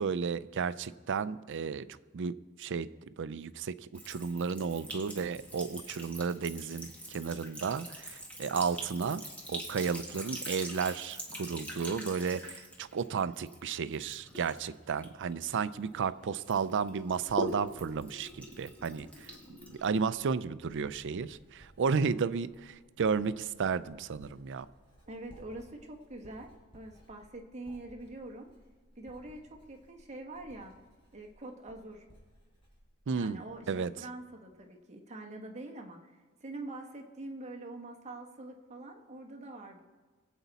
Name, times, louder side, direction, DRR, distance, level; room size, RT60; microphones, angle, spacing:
voice 1, 0.0-1.9 2.1-2.9 3.2-3.7 4.1-9.2 9.5-19.3 19.7-24.7 33.1-33.4 33.7-33.9, right 5 dB, 55° right, 15 dB, 0.4 m, -33 dB
Sink (filling or washing) / Trickle dribble, 3.9-16.1 16.4-20.3, equal, 5° left, 1.9 m, -44 dB
Writing, 17.5-33.9 34.1-34.6, equal, 25° left, 4.3 m, -61 dB
voice 2, 25.1-28.5 29.0-30.7 31.1-32.0 33.1-39.8, right 2 dB, 30° right, 1 dB, 1.3 m, -45 dB
23.0 x 8.1 x 4.1 m, 1.4 s
head